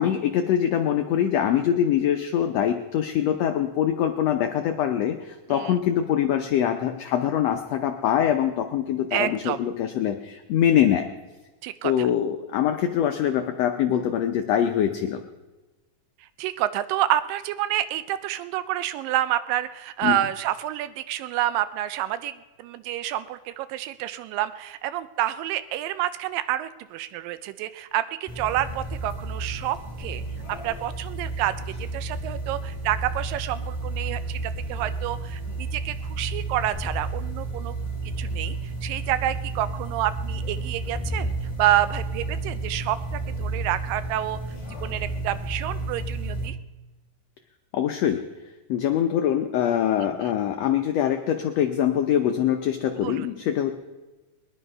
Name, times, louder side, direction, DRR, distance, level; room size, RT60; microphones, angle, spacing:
voice 1, 0.0-11.1 11.8-15.2 20.0-20.2 47.7-48.2 48.7-53.7, left 10 dB, 80° left, 6 dB, 1.5 m, -23 dB
voice 2, 9.1-9.6 11.6-12.1 16.4-22.3 22.6-30.2 30.6-31.5 31.9-34.4 34.7-37.8 38.2-38.6 38.8-41.3 41.6-44.4 44.8-46.6 50.0-50.1 53.0-53.3, right 13 dB, 85° right, 13 dB, 2.3 m, -28 dB
sound 1, 28.3-46.5, right 2 dB, 40° left, 0.4 m, -32 dB
21.5 x 10.0 x 5.4 m, 1.2 s
omnidirectional pair, 3.9 m